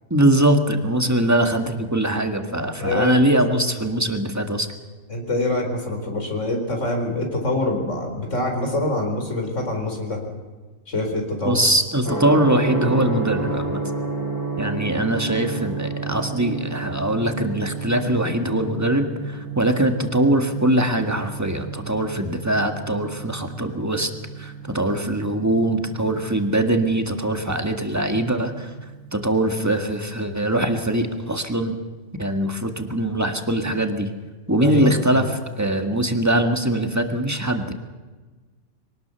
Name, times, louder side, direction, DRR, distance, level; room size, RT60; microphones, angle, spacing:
voice 1, 0.1-4.7 11.5-13.8 14.6-24.1 24.4-28.7 29.1-31.8 32.2-34.1 34.5-37.7, right 1 dB, 15° right, 5 dB, 1.8 m, -22 dB
voice 2, 2.6-3.4 5.1-10.2 10.9-11.6 34.6-35.3, left 2 dB, 80° left, 3 dB, 4.6 m, -25 dB
Gong, 12.0-29.9, right 4 dB, 15° left, 4.0 m, -32 dB
23.5 x 18.5 x 7.0 m, 1.3 s
omnidirectional pair, 1.3 m